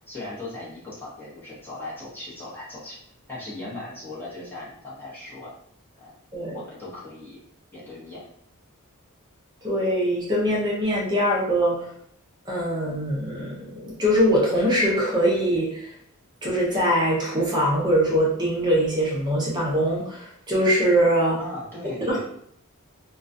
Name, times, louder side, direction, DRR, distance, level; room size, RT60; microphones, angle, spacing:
voice 1, 0.1-3.0 3.3-5.5 6.0-6.1 6.5-7.4 7.7-8.3 21.4-22.2, left 2 dB, 10° left, -9 dB, 0.9 m, -38 dB
voice 2, 9.6-11.9 12.5-15.9 16.4-21.4 22.1-22.2, equal, 20° right, -4 dB, 0.5 m, -22 dB
2.3 x 2.2 x 2.5 m, 0.67 s
head